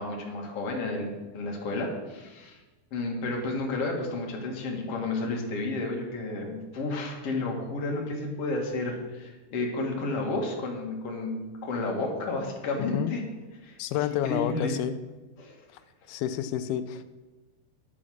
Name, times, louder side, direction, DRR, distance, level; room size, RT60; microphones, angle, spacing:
voice 1, 0.0-2.6 2.9-13.2 13.6-13.8 14.2-14.8 15.4-15.6, left 2 dB, 45° left, 0 dB, 2.3 m, -31 dB
voice 2, 13.8-14.9 16.1-17.1, left 10 dB, 80° left, 11 dB, 2.4 m, -29 dB
10.0 x 8.4 x 6.4 m, 1.2 s
omnidirectional pair, 4.7 m